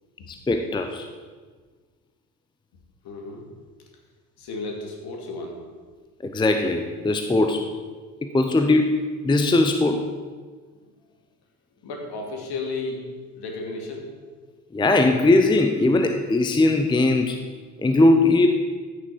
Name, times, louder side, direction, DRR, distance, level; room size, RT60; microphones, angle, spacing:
voice 1, 0.3-1.1 6.2-7.6 8.2-8.9 9.2-10.0 14.7-17.4 17.8-18.5, left 2 dB, 10° left, 6 dB, 0.7 m, -20 dB
voice 2, 3.0-3.5 4.4-5.6 11.8-13.0 13.3-14.1, left 3 dB, 50° left, 1 dB, 2.5 m, -33 dB
14.5 x 6.3 x 4.6 m, 1.5 s
hypercardioid pair, 60°, 48 cm